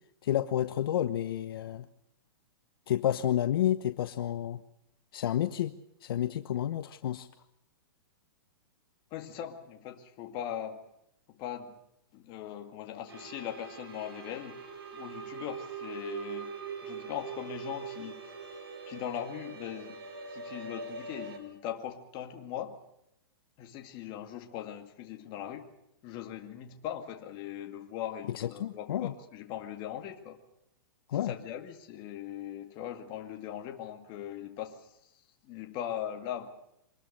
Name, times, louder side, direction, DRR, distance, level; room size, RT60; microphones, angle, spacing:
voice 1, 0.2-1.9 2.9-4.6 5.1-5.7 6.0-7.3 28.3-29.1 31.1-31.3, left 11 dB, 65° left, 10 dB, 1.1 m, -30 dB
voice 2, 9.1-10.8 11.3-11.8 12.1-14.6 14.9-16.6 16.8-18.3 18.9-20.0 20.3-22.8 23.6-25.7 26.0-30.4 31.1-35.1 35.4-36.5, left 10 dB, 35° left, 4 dB, 2.2 m, -40 dB
sound 1, 13.1-21.4, right 5 dB, 75° right, 5.7 m, -42 dB
25.0 x 20.5 x 6.7 m, 0.80 s
hypercardioid pair, 140°, 13 cm